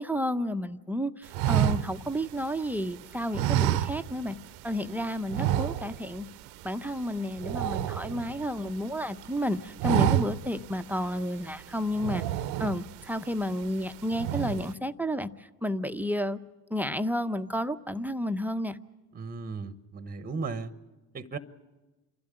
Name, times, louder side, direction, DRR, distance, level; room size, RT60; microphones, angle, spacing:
voice 1, 0.0-4.4 4.6-6.3 6.6-12.2 12.6-16.4 16.7-18.8, equal, 5° right, 0.7 m, -31 dB
sound 1, 1.3-2.8 3.3-4.4 4.7-4.9 5.3-6.2 6.5-6.7 7.0-8.7 9.1-9.4 9.7-10.6 11.0-11.1 11.9-13.0 13.5-13.8 14.1-14.7, right 12 dB, 65° right, 0.8 m, -28 dB
voice 2, 19.1-20.7 21.1-21.4, right 4 dB, 20° right, 1.0 m, -36 dB
27.5 x 12.0 x 9.8 m
hypercardioid pair, 75°, 43 cm